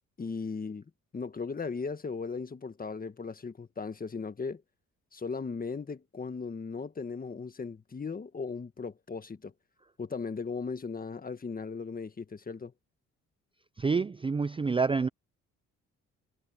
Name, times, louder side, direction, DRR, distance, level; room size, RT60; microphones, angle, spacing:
voice 1, 0.2-0.8 1.1-4.6 5.1-9.5 10.0-12.7, left 4 dB, 30° left, 1.6 m, -37 dB
voice 2, 13.8-15.1, right 4 dB, 20° right, 0.5 m, -27 dB
cardioid pair, 90°, 30 cm